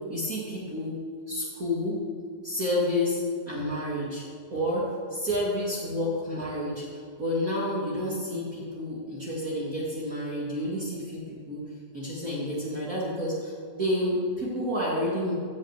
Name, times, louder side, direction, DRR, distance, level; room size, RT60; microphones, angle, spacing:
voice 1, 0.1-1.0 1.3-2.0 2.4-3.2 3.5-4.2 4.5-11.6 11.9-15.3, left 1 dB, 75° right, -6 dB, 0.7 m, -30 dB
15.5 x 5.7 x 8.0 m, 2.2 s
omnidirectional pair, 5.0 m